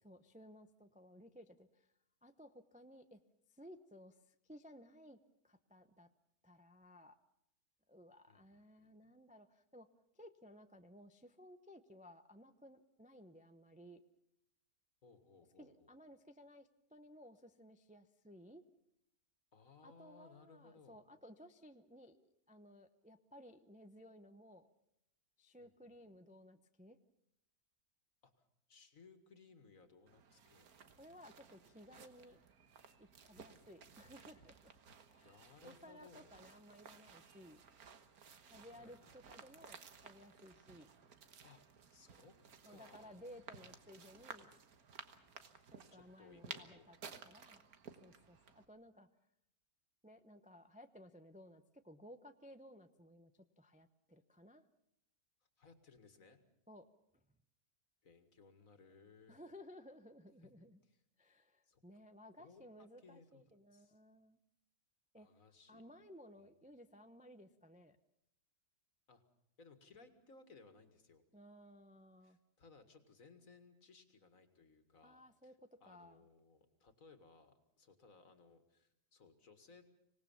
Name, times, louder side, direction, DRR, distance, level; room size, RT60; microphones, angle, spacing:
voice 1, 0.0-1.9 2.2-3.2 3.5-5.2 5.4-6.1 6.4-7.2 7.9-9.9 10.1-14.0 15.6-18.6 19.8-24.7 25.4-27.0 31.0-32.4 33.0-34.7 35.1-37.6 38.5-40.9 42.6-44.5 45.7-47.7 48.0-49.1 50.0-54.7 56.7-56.9 59.3-60.8 61.2-64.4 65.1-65.3 65.7-68.0 71.3-72.4 75.0-76.2, equal, 10° right, 9 dB, 0.5 m, -58 dB
voice 2, 8.3-8.9 15.0-15.9 19.5-21.0 25.6-26.1 28.2-28.3 28.7-30.7 35.2-36.4 38.8-39.4 41.4-41.6 41.9-42.4 42.6-43.2 45.9-46.9 55.6-56.4 58.0-59.4 60.9-61.0 61.6-61.8 62.4-64.0 65.1-65.8 66.4-66.5 69.1-69.2 69.6-71.2 72.2-79.9, left 4 dB, 60° left, 8 dB, 2.3 m, -63 dB
sound 1, 30.1-48.6, right 6 dB, 70° right, 1.8 m, -57 dB
25.5 x 18.5 x 7.1 m, 0.81 s
omnidirectional pair, 1.6 m